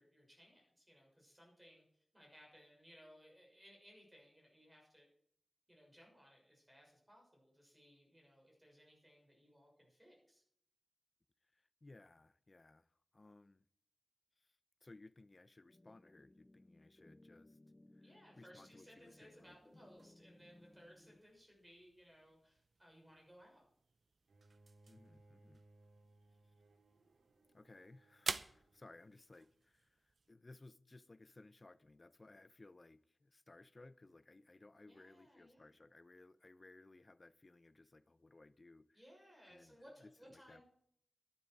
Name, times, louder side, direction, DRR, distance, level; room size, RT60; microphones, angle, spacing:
voice 1, 0.0-5.1 5.7-10.4 18.0-23.7 34.8-35.7 38.9-40.6, equal, 10° right, 6.4 m, -63 dB
voice 2, 11.5-13.6 14.4-17.6 17.9-19.6 24.9-25.6 27.5-39.0 39.5-40.6, left 2 dB, 35° left, 0.6 m, -61 dB
sound 1, 15.7-21.2, left 1 dB, 15° left, 0.9 m, -64 dB
sound 2, 18.9-30.4, right 3 dB, 50° right, 0.6 m, -52 dB
Bowed string instrument, 24.3-29.3, right 2 dB, 90° right, 2.5 m, -68 dB
12.5 x 11.0 x 4.8 m
wide cardioid pair, 115°, 0 cm